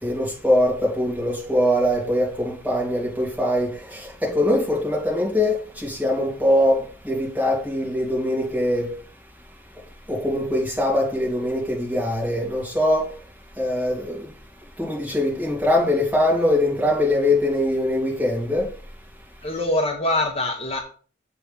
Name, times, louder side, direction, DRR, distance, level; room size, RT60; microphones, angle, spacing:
voice 1, 0.0-8.9 10.1-13.1 13.6-14.2 14.8-18.7, left 1 dB, 10° right, -4 dB, 2.8 m, -22 dB
voice 2, 19.4-20.8, left 1 dB, 35° left, 3 dB, 0.9 m, -24 dB
7.5 x 3.6 x 5.5 m, 0.41 s
head